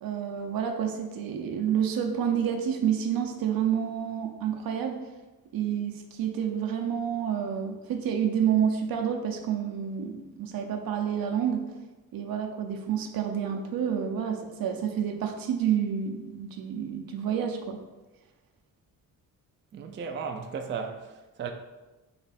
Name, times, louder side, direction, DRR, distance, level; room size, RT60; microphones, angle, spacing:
voice 1, 0.0-5.0 5.5-11.6 12.1-17.8, right 8 dB, 75° right, 0.7 m, -29 dB
voice 2, 19.7-21.5, right 6 dB, 35° right, 0.4 m, -35 dB
3.6 x 3.3 x 4.1 m
cardioid pair, 100°, 36 cm